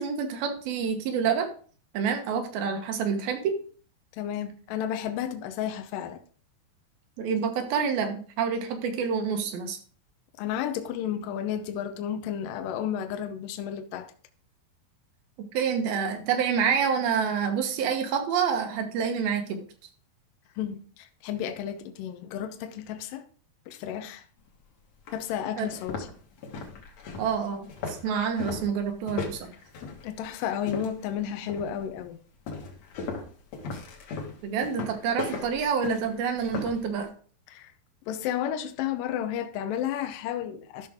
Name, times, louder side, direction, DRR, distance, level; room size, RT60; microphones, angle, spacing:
voice 1, 0.0-1.5 1.9-3.5 7.2-9.8 15.5-19.6 25.6-25.7 27.2-29.5 34.4-37.1, right 6 dB, 80° right, 3.1 m, -27 dB
voice 2, 4.1-6.2 10.4-14.1 20.6-23.3 23.7-24.2 25.1-26.1 30.0-32.2 37.5-37.7 38.1-40.9, left 9 dB, 75° left, 2.3 m, -32 dB
sound 1, 24.5-24.6 25.1-25.2 25.6-31.1 31.5-31.9 32.5-36.8, left 4 dB, 55° left, 2.3 m, -37 dB
12.5 x 6.3 x 3.6 m
omnidirectional pair, 4.2 m